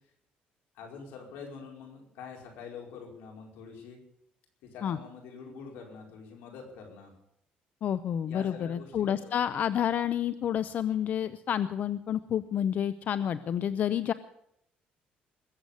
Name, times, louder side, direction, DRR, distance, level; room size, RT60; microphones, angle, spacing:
voice 1, 0.7-4.0 4.6-7.1 8.2-9.3, left 5 dB, 90° left, 1 dB, 4.9 m, -45 dB
voice 2, 7.8-14.1, left 9 dB, 55° left, 14 dB, 0.6 m, -29 dB
21.0 x 8.1 x 8.2 m, 0.73 s
cardioid pair, 110°, 3 cm